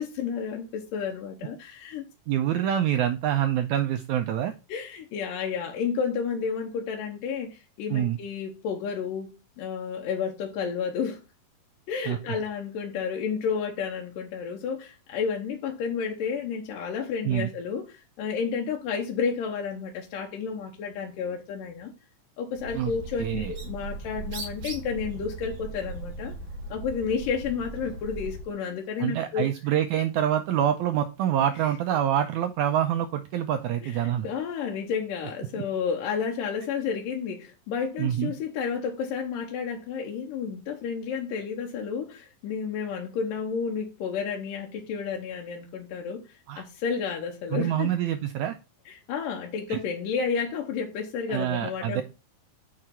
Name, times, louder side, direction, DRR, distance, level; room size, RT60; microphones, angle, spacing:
voice 1, 0.0-2.1 4.7-11.2 11.9-21.9 22.4-26.3 26.7-29.5 33.8-33.9 34.2-46.2 46.6-47.9 48.9-52.0, left 6 dB, 80° left, 2.5 m, -31 dB
voice 2, 2.3-4.5 7.9-8.2 12.1-12.2 17.2-17.5 22.7-22.9 23.2-23.5 29.0-34.3 35.5-35.6 38.0-38.3 46.5-46.6 47.5-48.6 49.7-49.8 51.3-52.0, right 10 dB, 90° right, 1.7 m, -26 dB
Bird, 22.5-28.5, right 3 dB, 50° right, 3.1 m, -38 dB
6.4 x 4.8 x 5.7 m
omnidirectional pair, 4.0 m